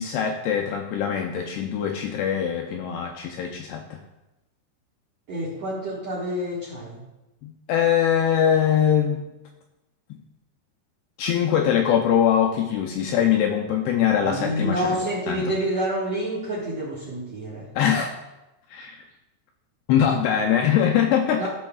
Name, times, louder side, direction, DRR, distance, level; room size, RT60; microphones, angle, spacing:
voice 1, 0.0-4.0 7.4-9.2 11.2-15.5 17.8-18.1 18.7-19.0 19.9-21.5, left 9 dB, 80° left, 1 dB, 2.4 m, -22 dB
voice 2, 5.3-7.0 14.2-17.7 21.4-21.5, right 1 dB, 65° right, -5 dB, 1.6 m, -28 dB
14.5 x 6.2 x 2.3 m, 0.99 s
omnidirectional pair, 5.1 m